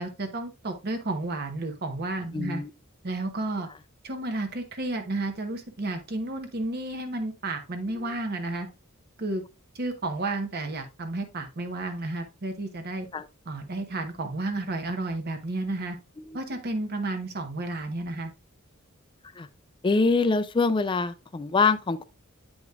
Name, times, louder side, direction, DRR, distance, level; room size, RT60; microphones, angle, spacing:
voice 1, 0.0-2.6 3.0-3.7 4.0-8.7 9.2-9.4 9.7-13.1 13.5-16.0 16.3-18.3, right 2 dB, 50° right, 1.0 m, -32 dB
voice 2, 2.3-2.7 8.0-8.1 13.1-13.3 16.2-16.4 19.4-19.5 19.8-22.0, left 4 dB, 25° left, 0.4 m, -25 dB
8.1 x 5.0 x 2.4 m
head